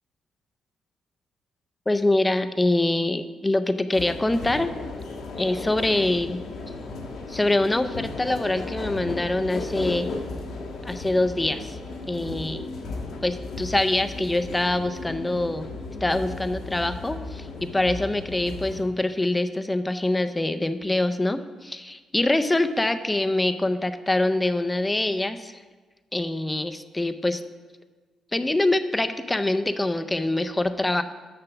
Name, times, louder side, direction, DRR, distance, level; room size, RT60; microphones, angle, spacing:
voice 1, 1.9-4.7 5.4-6.4 7.3-10.1 10.8-11.8 12.1-12.6 13.2-15.7 16.0-25.5 26.1-27.4 28.3-31.0, left 2 dB, 15° left, 10 dB, 0.5 m, -24 dB
sound 1, 3.9-18.8, left 3 dB, 75° left, 1.3 m, -35 dB
6.7 x 5.9 x 6.9 m, 1.4 s
cardioid pair, 90°, 0 cm